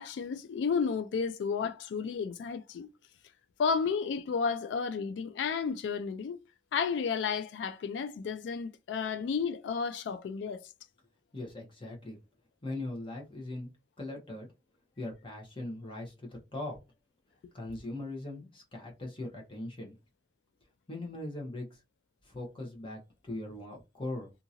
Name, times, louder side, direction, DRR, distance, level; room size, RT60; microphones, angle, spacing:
voice 1, 0.0-2.9 3.6-6.4 6.7-10.6, left 5 dB, 90° left, 0.3 m, -32 dB
voice 2, 11.3-12.2 12.6-13.7 14.0-14.5 15.0-16.8 17.5-19.9 20.9-21.8 22.2-24.3, left 2 dB, 30° left, 1.0 m, -40 dB
2.7 x 2.5 x 2.8 m
head